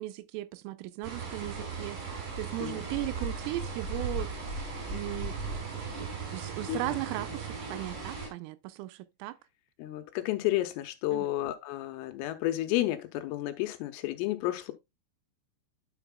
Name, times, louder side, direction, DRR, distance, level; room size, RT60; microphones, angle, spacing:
voice 1, 0.0-2.0 2.4-4.3 4.9-5.7 6.0-9.4 11.1-11.3, right 17 dB, 85° right, 3.2 m, -37 dB
sound 1, 1.0-8.3, right 4 dB, 60° right, 5.8 m, -37 dB
voice 2, 6.7-7.0 9.8-14.7, left 15 dB, 80° left, 3.5 m, -31 dB
10.0 x 6.5 x 2.3 m
omnidirectional pair, 5.9 m